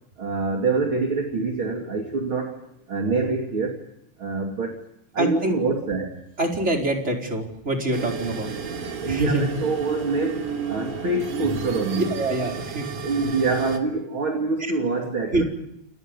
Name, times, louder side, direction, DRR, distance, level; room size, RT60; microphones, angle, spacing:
voice 1, 0.2-2.6 2.9-3.8 4.2-4.8 5.1-6.2 9.0-12.1 13.0-15.4, right 3 dB, 40° right, 2 dB, 3.5 m, -25 dB
voice 2, 5.2-5.5 6.4-8.5 9.0-9.5 11.9-12.9 15.3-15.4, right 2 dB, 20° right, 1 dB, 4.9 m, -25 dB
sound 1, 7.9-13.8, right 6 dB, 75° right, 4.1 m, -32 dB
29.5 x 29.5 x 5.4 m, 0.81 s
omnidirectional pair, 3.6 m